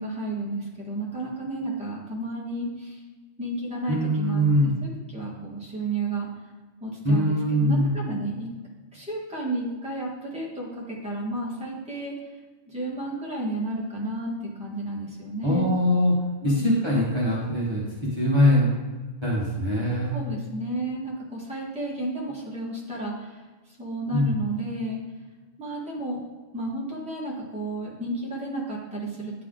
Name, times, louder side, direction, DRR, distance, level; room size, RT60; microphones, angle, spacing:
voice 1, 0.0-3.0 3.4-6.3 6.8-8.5 8.9-12.1 12.7-14.3 14.6-15.7 16.4-16.6 20.1-23.4 23.8-25.0 25.6-26.2 26.5-29.3, right 2 dB, 5° right, -5 dB, 1.4 m, -32 dB
voice 2, 3.9-4.7 7.0-7.9 15.4-16.1 16.4-18.7 19.2-20.2 24.1-24.3, left 1 dB, 20° right, -7 dB, 1.3 m, -22 dB
10.0 x 3.4 x 3.8 m, 1.3 s
omnidirectional pair, 1.3 m